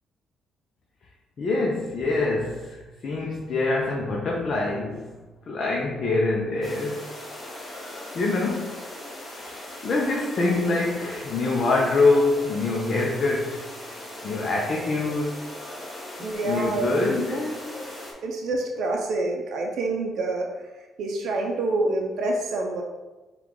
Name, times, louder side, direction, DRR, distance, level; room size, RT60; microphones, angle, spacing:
voice 1, 1.4-5.2 5.5-7.0 8.1-8.8 9.3-13.6 14.2-15.4 16.2-17.7, left 3 dB, 55° left, -2 dB, 0.6 m, -25 dB
sound 1, 6.6-18.1, left 1 dB, 30° left, 1.2 m, -39 dB
voice 2, 16.2-16.9 18.2-20.5 21.0-22.8, right 2 dB, 75° right, 1 dB, 0.6 m, -27 dB
4.8 x 2.4 x 3.7 m, 1.2 s
cardioid pair, 90°, 0 cm